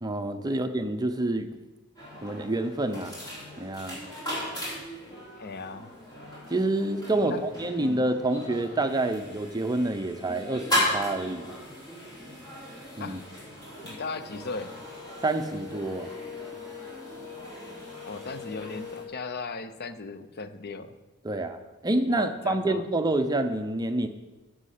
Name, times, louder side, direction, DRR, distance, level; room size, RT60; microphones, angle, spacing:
voice 1, 0.0-1.5 2.2-3.2 3.6-4.0 6.5-11.6 13.0-13.2 15.2-16.1 21.2-24.1, right 2 dB, 15° right, 7 dB, 0.6 m, -28 dB
sound 1, 2.0-19.0, left 1 dB, 20° left, 3.4 m, -36 dB
voice 2, 5.4-5.9 7.1-7.4 7.8-8.0 13.0-13.2 13.8-14.7 18.0-21.0 22.1-22.9, left 4 dB, 45° left, 11 dB, 0.6 m, -37 dB
9.7 x 6.2 x 6.6 m, 1.1 s
head